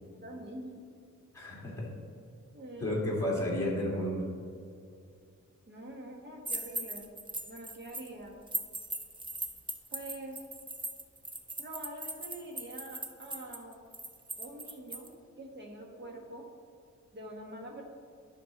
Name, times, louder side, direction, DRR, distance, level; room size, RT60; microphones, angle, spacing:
voice 1, 0.2-0.8 2.5-3.2 5.7-7.1 7.5-8.4 9.9-10.4 11.6-13.8 14.4-16.5 17.1-17.8, right 1 dB, 35° right, 0 dB, 1.4 m, -45 dB
voice 2, 1.3-1.9 2.8-4.3, left 1 dB, 10° left, -5 dB, 2.1 m, -32 dB
sound 1, 6.4-8.1 8.5-15.1, right 2 dB, 15° right, 0.5 m, -39 dB
11.0 x 5.9 x 3.9 m, 2.4 s
wide cardioid pair, 165°, 30 cm